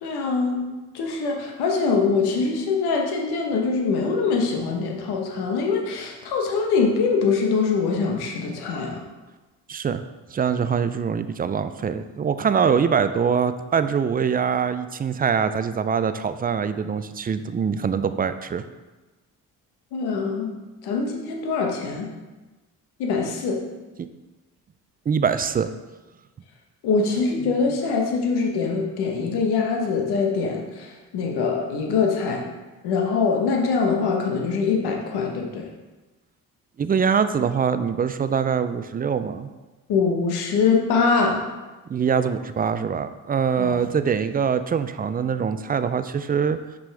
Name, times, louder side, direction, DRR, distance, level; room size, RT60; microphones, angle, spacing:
voice 1, 0.0-0.6 0.9-9.0 19.9-20.5 20.8-22.1 23.0-23.6 26.8-32.4 32.8-35.7 39.9-41.4 43.6-43.8, left 4 dB, 85° left, 1 dB, 1.2 m, -23 dB
voice 2, 9.7-10.0 10.3-18.6 24.0-24.1 25.1-25.7 36.8-39.5 41.9-46.6, right 6 dB, 25° right, 11 dB, 0.4 m, -23 dB
5.8 x 5.3 x 3.3 m, 1.2 s
supercardioid pair, 70°, 38 cm